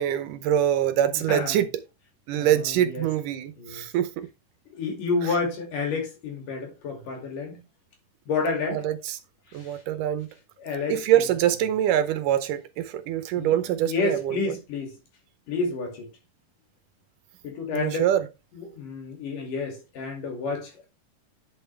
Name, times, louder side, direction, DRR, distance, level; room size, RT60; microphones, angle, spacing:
voice 1, 0.0-1.7 2.3-4.3 8.7-9.2 9.5-10.3 10.9-14.4 17.7-18.3, right 11 dB, 75° right, 2.3 m, -24 dB
voice 2, 1.0-1.6 2.4-3.1 3.6-3.8 4.7-7.6 8.3-8.8 9.5-9.8 10.6-11.2 13.4-15.0 15.5-16.1 17.4-18.1 18.5-20.9, left 4 dB, 70° left, 4.2 m, -30 dB
10.5 x 6.5 x 3.3 m
omnidirectional pair, 3.9 m